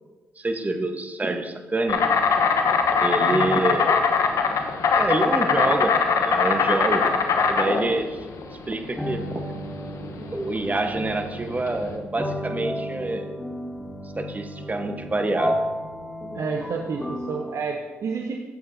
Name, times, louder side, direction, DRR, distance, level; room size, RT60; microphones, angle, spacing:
voice 1, 0.4-2.0 3.0-4.0 4.9-7.1 7.5-8.2 8.7-9.5 10.3-13.4 14.2-15.7, right 2 dB, 25° right, 7 dB, 1.1 m, -26 dB
Insect, 1.9-11.9, left 5 dB, 65° left, 0.9 m, -22 dB
voice 2, 3.3-3.8 16.3-18.4, right 5 dB, 60° right, 3 dB, 0.7 m, -30 dB
sound 1, 7.3-17.6, equal, 5° left, 2.0 m, -33 dB
12.5 x 7.7 x 2.7 m, 1.3 s
hypercardioid pair, 45°, 6 cm